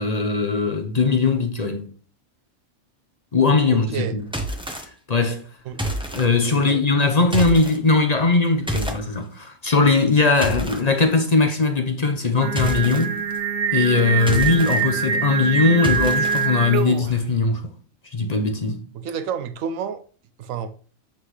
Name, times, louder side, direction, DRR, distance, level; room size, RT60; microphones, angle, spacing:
voice 1, 0.0-1.9 3.3-4.2 5.1-5.4 6.1-13.2 13.7-17.6 18.1-18.8, left 3 dB, 35° left, 0.8 m, -20 dB
voice 2, 3.7-4.1 5.7-5.8 6.7-6.8 18.9-20.0 20.4-20.7, right 7 dB, 85° right, 1.0 m, -29 dB
sound 1, 4.2-4.8 5.7-6.3 7.2-7.8 8.7-9.0 10.0-10.8 12.6-13.0 14.1-14.8 15.8-16.5, right 1 dB, 5° right, 1.0 m, -28 dB
Singing, 12.4-17.2, right 6 dB, 70° right, 1.0 m, -24 dB
8.6 x 5.8 x 3.2 m
omnidirectional pair, 1.4 m